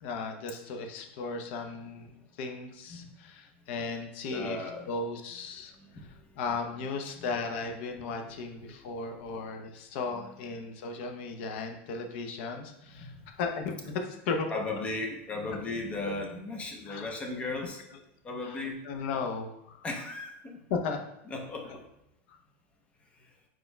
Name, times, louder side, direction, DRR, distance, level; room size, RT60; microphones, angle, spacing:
voice 1, 0.0-4.6 4.9-5.7 6.4-13.1 13.4-14.6 15.1-15.2 16.9-17.1 17.6-17.7 18.5-18.6 18.8-19.8 20.7-21.0, left 4 dB, 65° left, 5 dB, 0.7 m, -35 dB
voice 2, 4.3-4.9 5.8-6.3 7.2-7.3 8.1-9.4 10.1-10.4 12.9-13.2 14.5-17.8 18.2-18.8 19.8-20.6 21.3-21.8, left 2 dB, 20° left, 2 dB, 0.6 m, -37 dB
4.4 x 4.3 x 2.3 m, 0.81 s
supercardioid pair, 150°, 7 cm